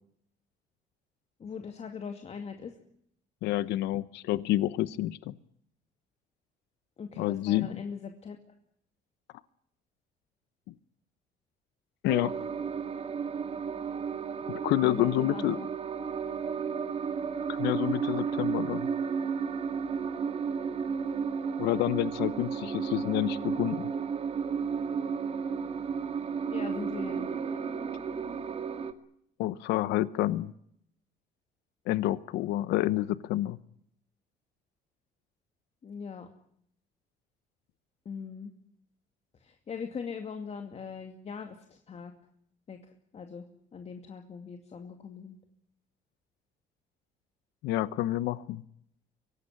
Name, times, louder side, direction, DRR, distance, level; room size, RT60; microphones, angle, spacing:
voice 1, 1.4-2.8 7.0-8.4 14.8-15.7 26.4-27.3 35.8-36.3 38.0-38.5 39.3-42.2 42.7-45.4, left 6 dB, 40° left, 5 dB, 2.5 m, -41 dB
voice 2, 3.4-5.4 7.2-7.8 10.7-10.8 12.0-12.3 14.6-15.6 17.5-18.9 21.6-23.9 29.4-30.5 31.9-33.6 47.6-48.6, left 15 dB, 85° left, 16 dB, 0.9 m, -28 dB
sound 1, 12.1-28.9, right 6 dB, 35° right, 2.2 m, -33 dB
24.5 x 18.0 x 9.9 m, 0.71 s
cardioid pair, 110°, 17 cm